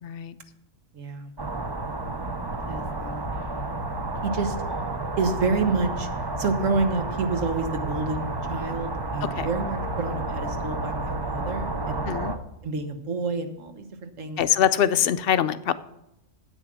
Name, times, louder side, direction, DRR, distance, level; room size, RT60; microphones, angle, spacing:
voice 1, 0.0-0.3 9.4-9.5 12.1-12.3 14.4-15.7, left 9 dB, 60° left, 14 dB, 0.6 m, -23 dB
voice 2, 0.9-1.3 2.7-3.3 4.2-4.6 5.2-6.1 6.4-12.1 12.6-14.4, right 3 dB, 70° right, 7 dB, 1.5 m, -29 dB
sound 1, 1.4-12.4, right 2 dB, 25° right, 0.5 m, -31 dB
9.6 x 8.4 x 6.1 m, 0.85 s
omnidirectional pair, 1.4 m